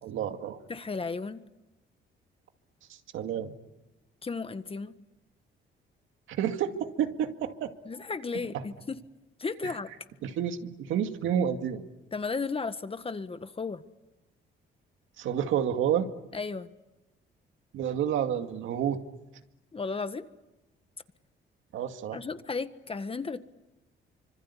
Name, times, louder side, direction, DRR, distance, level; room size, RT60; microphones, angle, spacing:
voice 1, 0.0-0.6 2.9-3.5 6.3-7.7 9.6-9.7 10.2-11.8 15.2-16.1 17.7-19.0 21.7-22.2, right 9 dB, 85° right, 7 dB, 2.2 m, -29 dB
voice 2, 0.7-1.4 4.2-4.9 7.8-9.0 9.4-9.9 12.1-13.8 16.3-16.7 19.7-20.2 22.1-23.4, left 4 dB, 30° left, 11 dB, 1.6 m, -34 dB
26.0 x 25.5 x 8.5 m, 1.0 s
cardioid pair, 90°, 20 cm